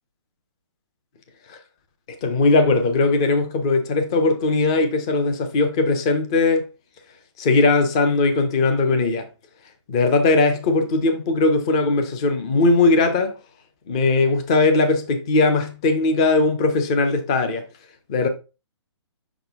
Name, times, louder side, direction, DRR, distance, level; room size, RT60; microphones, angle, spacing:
voice 1, 2.2-6.7 7.4-9.3 9.9-13.4 13.9-17.7 18.1-18.3, left 3 dB, 10° left, 0.4 m, -19 dB
6.0 x 5.1 x 3.3 m
hypercardioid pair, 170°, 15 cm